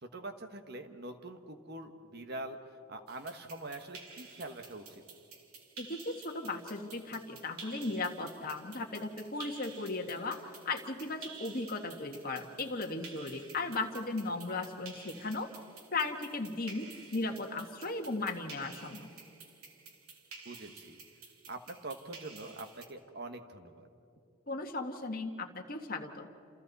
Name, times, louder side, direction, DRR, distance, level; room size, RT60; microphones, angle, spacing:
voice 1, 0.0-5.0 13.6-13.7 20.4-21.0 21.5-23.9, right 2 dB, 45° right, 7 dB, 1.4 m, -44 dB
sound 1, 3.1-22.9, right 5 dB, 75° right, 2.7 m, -52 dB
voice 2, 5.8-15.5 15.9-19.1 24.5-26.3, left 3 dB, 40° left, 3 dB, 1.6 m, -36 dB
29.0 x 28.0 x 4.2 m, 2.8 s
head